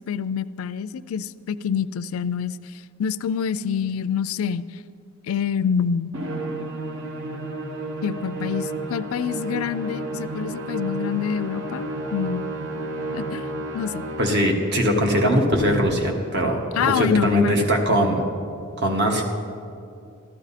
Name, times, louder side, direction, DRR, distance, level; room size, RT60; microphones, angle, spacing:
voice 1, 0.0-4.7 5.3-6.1 8.0-12.5 13.1-13.5 13.7-14.0 16.7-17.5, left 7 dB, 75° left, 15 dB, 0.3 m, -26 dB
Musical instrument, 6.1-14.6, right 2 dB, 70° right, 1.0 m, -31 dB
voice 2, 14.2-18.2 18.8-19.2, equal, 50° right, 1 dB, 1.4 m, -21 dB
13.5 x 11.5 x 4.2 m, 2.5 s
head